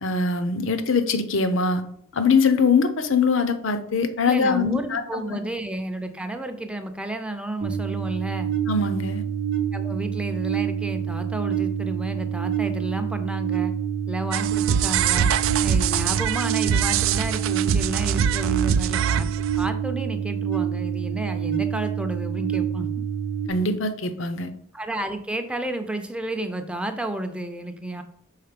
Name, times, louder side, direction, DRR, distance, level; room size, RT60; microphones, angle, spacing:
voice 1, 0.0-1.8 2.1-5.0 5.3-5.4 8.7-9.2 23.5-24.5, left 4 dB, 65° left, 10 dB, 0.7 m, -22 dB
voice 2, 4.2-8.5 9.7-13.7 14.1-15.3 15.6-19.3 19.6-22.9 24.7-28.0, right 1 dB, 5° right, 6 dB, 0.5 m, -31 dB
sound 1, 7.6-23.5, right 8 dB, 50° right, 0.8 m, -27 dB
sound 2, 14.3-19.7, right 8 dB, 70° right, 0.3 m, -24 dB
5.7 x 4.0 x 5.1 m, 0.68 s
head